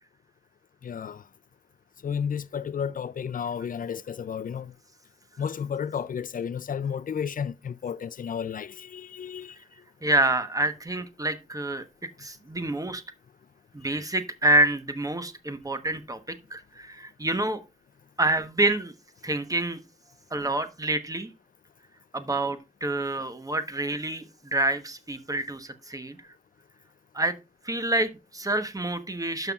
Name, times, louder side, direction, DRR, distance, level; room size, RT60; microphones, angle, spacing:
voice 1, 0.8-1.2 2.0-4.7 5.4-9.6, left 7 dB, 70° left, 0.4 m, -32 dB
voice 2, 10.0-11.8 12.2-13.0 13.7-17.6 18.2-18.9 19.2-19.8 20.3-21.3 22.1-26.2 27.1-27.3 27.6-29.5, right 2 dB, 25° right, 1.1 m, -27 dB
12.5 x 5.7 x 2.4 m
wide cardioid pair, 80°, 14 cm